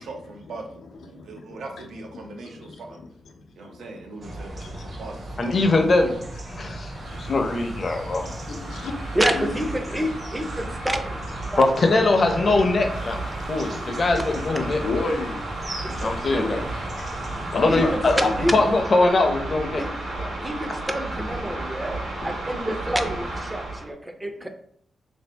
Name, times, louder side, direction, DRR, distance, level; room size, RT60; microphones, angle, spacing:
voice 1, 0.0-3.0 3.6-6.0, right 3 dB, 90° right, 2 dB, 0.6 m, -41 dB
voice 2, 1.1-1.6 2.1-2.8 3.3-4.9 6.5-9.5 9.9-10.0 10.6-10.7 13.4-14.0 14.7-15.5 16.3-16.6 17.5-18.4, left 3 dB, 85° left, 3 dB, 0.5 m, -34 dB
sound 1, 4.2-18.8, right 1 dB, 45° right, 0.7 m, -37 dB
voice 3, 5.4-6.1 6.6-6.9 7.2-8.4 11.6-14.8 16.0-16.6 17.3-18.1 18.5-19.8 20.1-20.3, left 2 dB, 40° left, 4 dB, 0.5 m, -22 dB
sound 2, 6.9-23.9, right 2 dB, 70° right, 0.9 m, -34 dB
voice 4, 9.1-11.2 11.5-11.8 12.2-12.5 14.1-14.7 15.8-16.6 17.7-18.7 19.8-19.9 20.4-24.5, equal, 10° right, 6 dB, 0.4 m, -28 dB
3.5 x 2.6 x 3.2 m, 0.65 s
wide cardioid pair, 130°, 0 cm